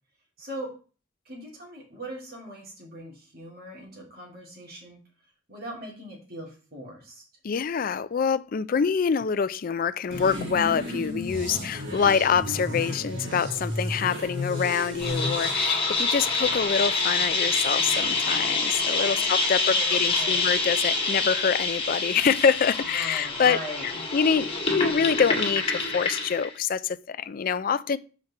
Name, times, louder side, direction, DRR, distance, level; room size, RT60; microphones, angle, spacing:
voice 1, 0.4-0.7 1.2-5.0 5.5-7.2 19.0-20.5 22.8-24.1, equal, 55° right, 2.9 m, -40 dB
voice 2, 7.4-23.6 23.8-28.0, left 6 dB, 50° left, 0.4 m, -25 dB
sound 1, 10.1-15.6, left 1 dB, 90° right, 2.7 m, -33 dB
sound 2, 15.0-26.5, left 3 dB, 30° left, 1.9 m, -26 dB
7.4 x 5.1 x 4.2 m
head